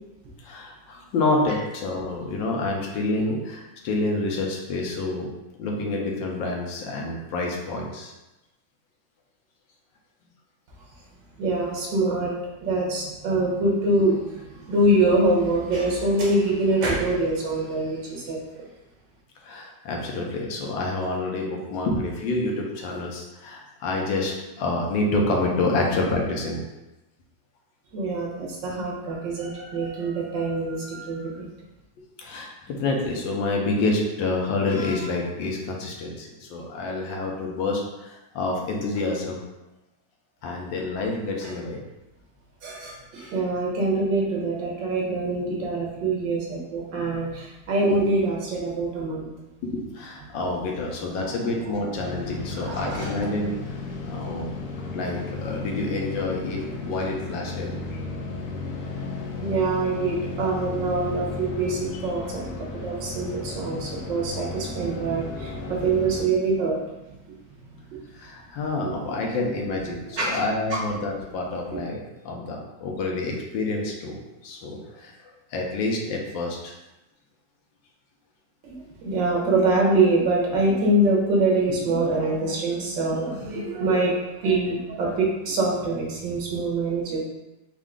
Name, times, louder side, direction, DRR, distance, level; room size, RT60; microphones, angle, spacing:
voice 1, 0.4-5.3 5.6-8.1 19.4-26.6 32.2-39.4 40.4-41.8 49.6-53.5 54.1-54.5 54.9-57.7 68.1-72.0 72.2-75.1 75.5-76.7, left 2 dB, 85° left, 0 dB, 1.5 m, -28 dB
voice 2, 11.4-12.3 12.6-18.7 27.9-31.4 41.4-41.6 42.6-49.3 50.2-50.5 51.2-51.3 51.7-51.9 52.5-53.3 59.4-66.8 67.9-68.0 70.1-70.4 70.7-70.8 78.6-87.2, right 2 dB, 75° right, -2 dB, 1.7 m, -24 dB
sound 1, 51.9-66.2, left 3 dB, 70° left, 1.1 m, -34 dB
4.6 x 2.4 x 3.7 m, 0.99 s
omnidirectional pair, 2.0 m